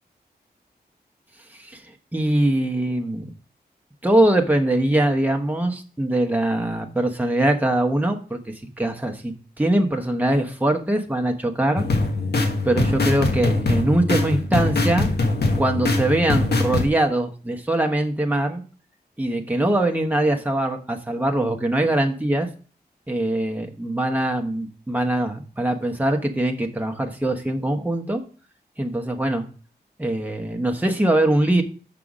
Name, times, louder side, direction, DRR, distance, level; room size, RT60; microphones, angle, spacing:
voice 1, 2.1-3.2 4.0-11.9 12.6-15.1 15.6-18.6 19.2-22.5 23.1-28.2 28.8-29.4 30.0-31.6, right 1 dB, 10° right, 3 dB, 1.1 m, -22 dB
sound 1, 11.8-16.9, left 2 dB, 75° left, 1.4 m, -22 dB
6.8 x 5.7 x 5.0 m, 0.38 s
wide cardioid pair, 95°, 17 cm